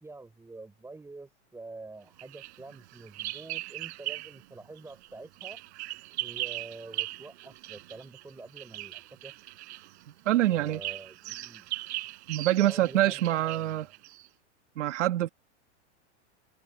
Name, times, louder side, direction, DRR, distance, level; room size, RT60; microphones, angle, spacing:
voice 1, 0.0-5.6 6.2-9.3 10.5-11.7 12.6-13.9, right 3 dB, 5° right, 5.0 m, -47 dB
Bird vocalization bird call bird song, 2.2-4.5 4.8-14.3, right 18 dB, 65° right, 6.6 m, -40 dB
voice 2, 10.2-10.8 12.3-13.9 14.8-15.3, right 14 dB, 85° right, 1.5 m, -25 dB
supercardioid pair, 135°, 35 cm